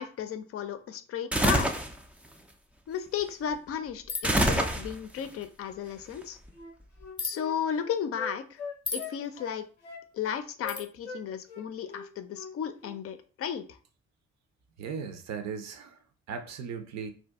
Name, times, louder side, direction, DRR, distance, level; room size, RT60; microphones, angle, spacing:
voice 1, 0.0-1.7 2.9-6.4 7.2-8.6 8.9-9.6 10.1-13.8, left 8 dB, 40° left, 0.5 m, -34 dB
sound 1, 1.3-1.9 4.2-5.2, right 1 dB, 5° right, 0.4 m, -25 dB
sound 2, 4.1-4.4 7.2-7.4 8.9-9.1 10.7-10.9, left 4 dB, 15° left, 0.8 m, -34 dB
Wind instrument woodwind instrument, 6.5-11.2 11.5-12.5 12.8-13.0, left 5 dB, 85° left, 0.6 m, -42 dB
voice 2, 14.8-16.0 16.3-17.1, right 6 dB, 50° right, 0.7 m, -37 dB
2.7 x 2.4 x 3.5 m
figure-of-eight pair, 45°, 34 cm